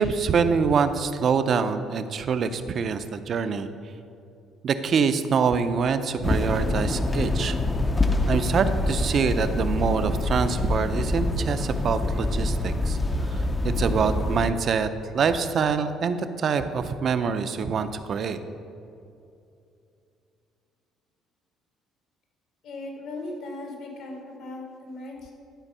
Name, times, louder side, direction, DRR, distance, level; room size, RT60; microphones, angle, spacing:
voice 1, 0.0-3.7 4.6-7.6 8.3-13.0 13.3-14.9 15.1-18.4, right 6 dB, 45° right, 10 dB, 0.5 m, -25 dB
sound 1, 6.2-14.5, left 2 dB, 20° left, 0.5 m, -25 dB
voice 2, 22.6-25.3, left 2 dB, 75° left, 0 dB, 1.9 m, -38 dB
11.5 x 4.4 x 5.5 m, 2.6 s
cardioid pair, 130°, 0 cm